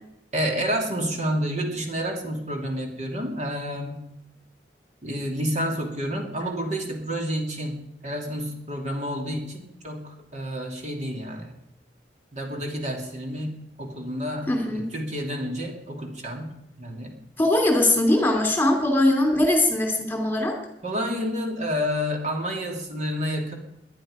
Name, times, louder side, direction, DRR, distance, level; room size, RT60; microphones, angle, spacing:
voice 1, 0.3-4.0 5.0-11.5 12.3-17.2 20.8-23.5, equal, 40° right, 1 dB, 2.8 m, -29 dB
voice 2, 14.5-14.8 17.4-20.5, left 1 dB, 10° left, 3 dB, 2.8 m, -21 dB
21.0 x 11.0 x 5.1 m, 0.84 s
head